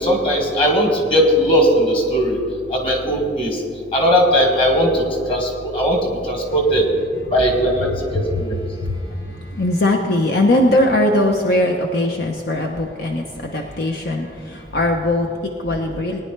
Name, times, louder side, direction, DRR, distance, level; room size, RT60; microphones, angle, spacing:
voice 1, 0.0-2.4 2.7-3.6 3.9-6.0 6.2-6.9 7.3-8.6, equal, 30° left, 1 dB, 2.0 m, -18 dB
voice 2, 8.7-16.2, left 1 dB, 60° left, 2 dB, 0.8 m, -20 dB
19.5 x 10.0 x 3.3 m, 2.2 s
head